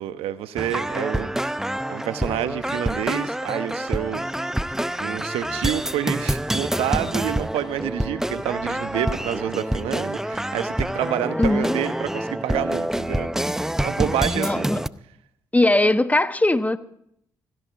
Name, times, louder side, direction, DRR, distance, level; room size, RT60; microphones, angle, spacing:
voice 1, 0.0-1.6 1.9-4.2 5.0-13.3 13.8-14.7, right 11 dB, 80° right, 1.0 m, -28 dB
sound 1, 0.6-14.9, right 1 dB, 5° right, 0.6 m, -27 dB
voice 2, 11.4-11.8 14.2-14.8 15.5-16.8, left 2 dB, 15° left, 1.1 m, -20 dB
17.0 x 15.5 x 4.7 m
supercardioid pair, 50°, 10 cm